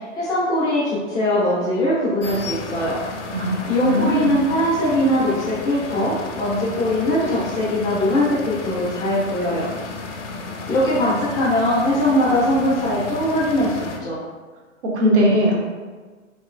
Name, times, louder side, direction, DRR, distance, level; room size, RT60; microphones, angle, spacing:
voice 1, 0.0-3.0 3.7-9.7 10.7-14.2, left 1 dB, 10° left, -9 dB, 0.4 m, -21 dB
sound 1, 2.2-14.0, left 4 dB, 60° left, 0.6 m, -33 dB
voice 2, 3.3-4.4 14.9-15.6, equal, 60° right, -2 dB, 1.0 m, -19 dB
3.0 x 2.9 x 2.4 m, 1.4 s
figure-of-eight pair, 115°, 40 cm